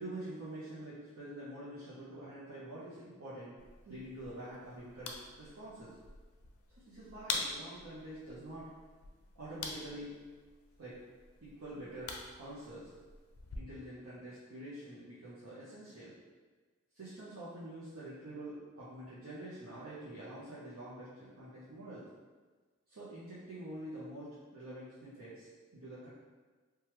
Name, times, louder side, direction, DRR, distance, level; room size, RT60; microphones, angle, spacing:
voice 1, 0.0-3.6 3.8-5.9 6.8-8.7 9.3-10.1 10.8-11.0 11.4-12.9 13.5-16.1 16.9-22.1 22.9-26.1, right 1 dB, 85° right, -10 dB, 0.7 m, -46 dB
sound 1, 3.6-13.6, left 4 dB, 85° left, 0.4 m, -46 dB
3.0 x 2.3 x 3.1 m, 1.4 s
head